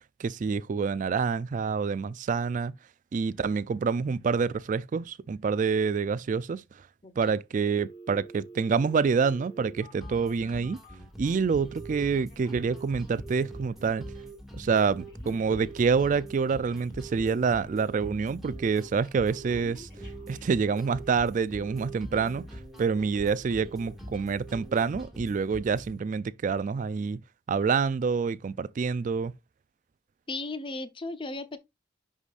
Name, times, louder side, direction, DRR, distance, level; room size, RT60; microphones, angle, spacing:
voice 1, 0.2-2.7 3.1-6.6 7.2-10.8 11.2-14.0 14.5-19.9 20.3-27.2 27.5-29.3, right 5 dB, 45° right, 0.3 m, -27 dB
Telephone, 7.8-11.0 11.6-12.0 12.3-13.7 14.0-14.4 14.7-18.1 18.5-18.9 19.1-21.2 21.6-22.4 22.8-23.2 23.5-23.9 24.3-24.7 25.0-25.1, right 5 dB, 50° left, 4.4 m, -47 dB
Game background Music loop short, 10.0-26.0, equal, ahead, 2.0 m, -44 dB
voice 2, 30.3-31.6, left 2 dB, 30° left, 0.7 m, -35 dB
10.5 x 4.9 x 2.4 m
head